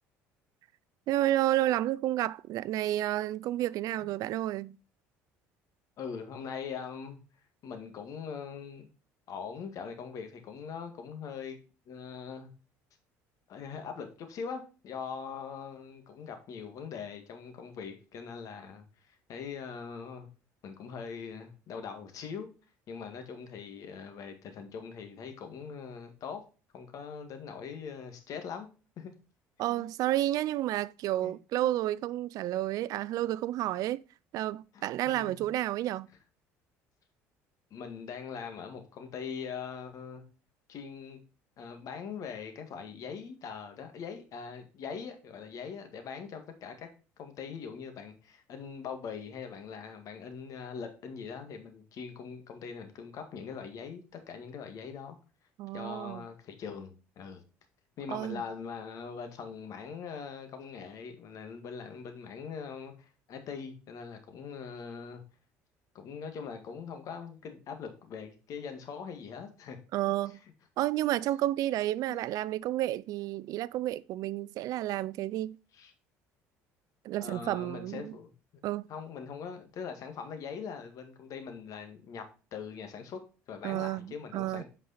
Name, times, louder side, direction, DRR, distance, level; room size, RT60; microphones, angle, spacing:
voice 1, 1.1-4.8 29.6-34.0 34.3-36.1 55.6-56.2 58.1-58.4 69.9-70.4 70.8-75.6 77.0-78.1 78.6-78.9 83.6-84.6, right 14 dB, 65° right, 0.4 m, -31 dB
voice 2, 6.0-7.2 7.6-8.9 9.3-11.6 11.9-12.5 13.5-20.3 20.6-22.5 22.9-26.4 26.7-28.7 29.0-29.1 29.7-29.9 31.2-31.8 34.7-35.5 37.7-40.2 40.7-41.2 41.6-46.9 47.2-55.2 55.7-57.4 58.0-65.2 65.9-69.8 70.3-70.4 72.1-72.3 75.7-75.9 77.2-78.3 78.9-84.6, left 6 dB, 60° left, 1.9 m, -42 dB
8.4 x 5.3 x 4.2 m
supercardioid pair, 85°, 7 cm